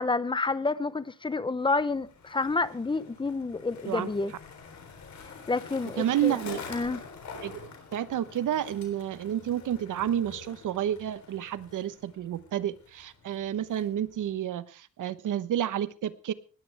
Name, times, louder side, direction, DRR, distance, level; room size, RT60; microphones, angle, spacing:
voice 1, 0.0-4.3 5.5-6.4 6.7-7.0, left 3 dB, 15° left, 0.7 m, -29 dB
Skateboard, 1.6-14.3, left 5 dB, 65° left, 3.7 m, -47 dB
voice 2, 6.0-6.6 7.3-16.3, right 10 dB, 85° right, 1.1 m, -30 dB
19.5 x 14.5 x 3.4 m
wide cardioid pair, 155°, 30 cm